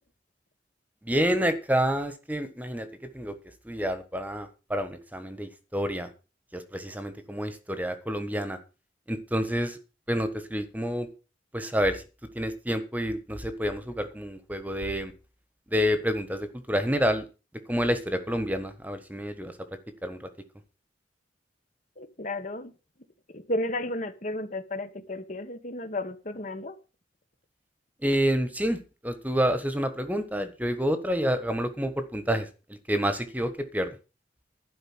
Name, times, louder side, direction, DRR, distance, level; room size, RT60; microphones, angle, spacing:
voice 1, 1.0-2.9 3.1-3.3 3.6-6.1 6.5-8.6 9.1-9.8 10.1-11.1 11.5-12.0 12.3-15.1 15.7-17.2 17.7-19.5 20.0-20.3 28.0-28.8 29.0-32.5 32.9-33.9, equal, 10° right, 9 dB, 1.3 m, -28 dB
voice 2, 22.0-22.7 23.3-26.8, left 1 dB, 45° left, 9 dB, 1.5 m, -33 dB
12.0 x 5.3 x 8.9 m, 0.33 s
head